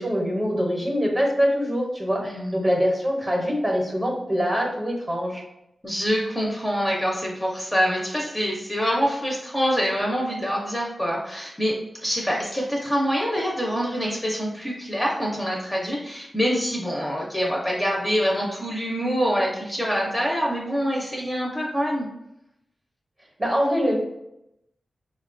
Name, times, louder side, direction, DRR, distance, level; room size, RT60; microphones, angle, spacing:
voice 1, 0.0-5.4 23.4-24.0, equal, 20° right, 0 dB, 0.7 m, -24 dB
voice 2, 2.3-2.7 5.8-22.1, equal, 10° left, -2 dB, 0.5 m, -25 dB
4.4 x 2.2 x 2.5 m, 0.85 s
wide cardioid pair, 145°, 0 cm